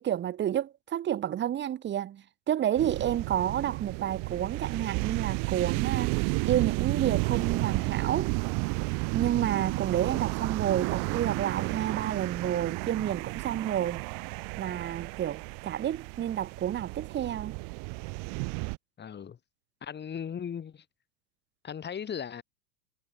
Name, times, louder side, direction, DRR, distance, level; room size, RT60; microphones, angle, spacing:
voice 1, 0.0-8.3 9.1-14.0 14.6-17.5, right 10 dB, 25° right, 1.8 m, -30 dB
sound 1, 2.8-18.8, right 35 dB, 45° right, 2.6 m, -32 dB
voice 2, 19.0-19.4 19.8-20.8 21.6-22.4, left 8 dB, 20° left, 7.5 m, -37 dB
figure-of-eight pair, 95°, 46 cm